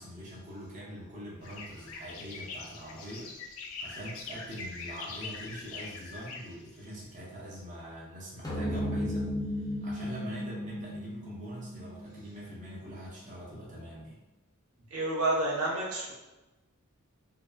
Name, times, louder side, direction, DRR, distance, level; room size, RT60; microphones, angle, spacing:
voice 1, 0.0-3.3 3.8-14.2 14.8-14.9, equal, 35° right, -5 dB, 0.6 m, -44 dB
sound 1, 1.4-7.0, left 4 dB, 70° left, 0.4 m, -43 dB
sound 2, 8.4-13.1, equal, 15° left, 0.5 m, -35 dB
voice 2, 14.9-16.1, right 2 dB, 90° right, -4 dB, 0.7 m, -29 dB
2.7 x 2.1 x 2.3 m, 1.0 s
head